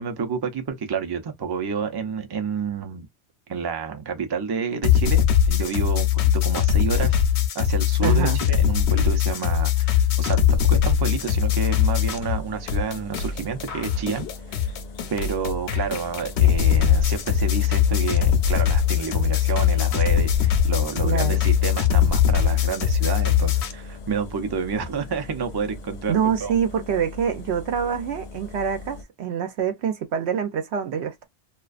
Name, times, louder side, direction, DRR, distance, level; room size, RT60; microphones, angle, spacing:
voice 1, 0.0-3.1 3.5-7.2 7.5-14.7 15.1-26.5, right 5 dB, 30° right, 0.4 m, -29 dB
sound 1, 4.8-12.4 12.7-23.7, left 9 dB, 85° left, 0.9 m, -21 dB
voice 2, 8.0-8.4 21.0-21.4 26.1-31.3, right 7 dB, 80° right, 0.9 m, -25 dB
sound 2, 11.1-29.0, left 2 dB, 55° left, 0.5 m, -40 dB
2.4 x 2.3 x 2.4 m
omnidirectional pair, 1.1 m